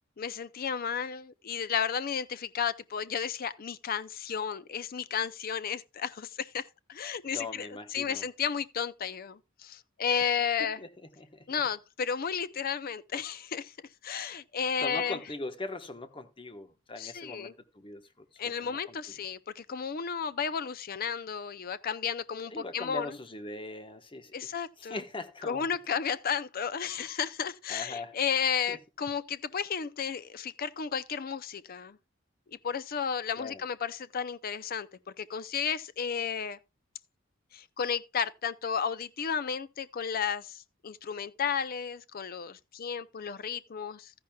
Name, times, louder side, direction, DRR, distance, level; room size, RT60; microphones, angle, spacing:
voice 1, 0.2-10.8 11.5-13.7 14.0-15.2 17.0-17.5 18.4-23.2 24.3-25.0 25.5-32.0 32.6-34.9 35.2-36.6 37.5-44.1, left 7 dB, 45° left, 0.5 m, -33 dB
voice 2, 7.3-8.2 10.2-10.9 11.2-11.5 14.8-18.9 22.5-24.5 24.8-25.7 27.7-28.1 28.7-28.8 33.4-33.6, left 2 dB, 25° left, 1.1 m, -41 dB
14.0 x 10.5 x 2.3 m
head